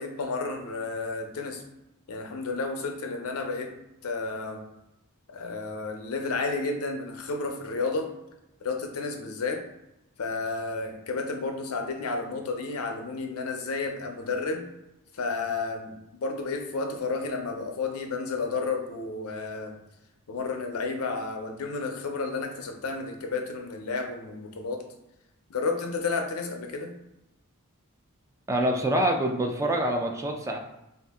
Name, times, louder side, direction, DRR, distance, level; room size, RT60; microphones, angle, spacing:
voice 1, 0.0-1.6 2.1-3.7 4.0-4.6 5.3-8.1 8.6-9.6 10.2-14.7 15.1-19.8 20.3-24.9 25.5-26.9, left 3 dB, 80° left, 4 dB, 0.5 m, -31 dB
voice 2, 28.5-30.6, right 1 dB, 15° right, 2 dB, 0.3 m, -26 dB
2.7 x 2.4 x 3.4 m, 0.91 s
head